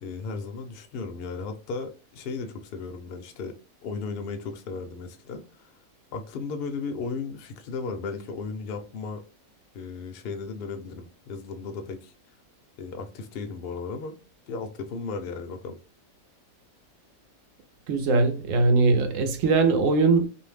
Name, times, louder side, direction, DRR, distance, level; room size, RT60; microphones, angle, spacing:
voice 1, 0.0-3.5 3.8-5.7 6.1-9.2 9.7-12.1 12.8-14.2 14.5-15.8, left 4 dB, 60° left, 0.6 m, -35 dB
voice 2, 17.9-20.3, right 3 dB, 70° right, 0.9 m, -21 dB
2.6 x 2.0 x 3.2 m
omnidirectional pair, 1.5 m